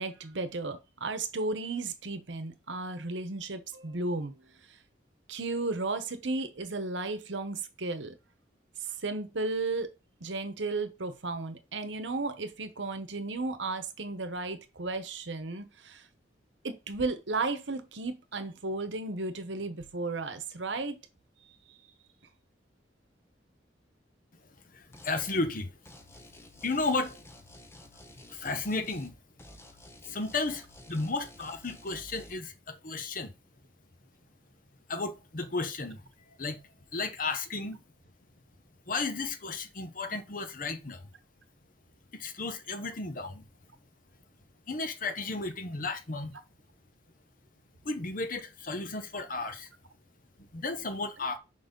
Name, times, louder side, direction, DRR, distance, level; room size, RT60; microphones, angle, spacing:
voice 1, 0.0-4.4 5.3-8.1 8.8-9.9 10.2-16.1 16.6-21.0, right 3 dB, 75° right, 1.0 m, -34 dB
voice 2, 24.7-25.7 26.1-26.2 26.6-27.3 28.3-29.2 30.1-33.3 34.9-36.0 36.4-36.6 36.9-37.8 38.9-41.0 42.1-43.4 44.7-46.4 47.8-49.7 50.4-51.4, left 3 dB, 45° left, 0.9 m, -33 dB
sound 1, 24.9-25.5 25.9-29.1 29.4-32.3, left 1 dB, 15° left, 0.8 m, -52 dB
5.4 x 4.1 x 5.2 m
head